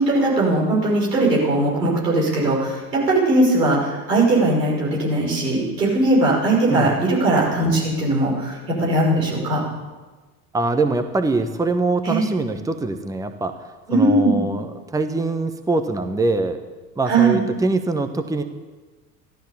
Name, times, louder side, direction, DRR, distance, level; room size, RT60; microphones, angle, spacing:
voice 1, 0.0-9.6 12.0-12.2 13.9-14.4 17.1-17.4, right 2 dB, 80° right, -4 dB, 5.8 m, -19 dB
voice 2, 10.5-13.6 13.9-16.6 17.0-18.4, right 3 dB, 5° right, 8 dB, 1.1 m, -23 dB
15.0 x 13.0 x 7.1 m, 1.3 s
figure-of-eight pair, 70°, 48 cm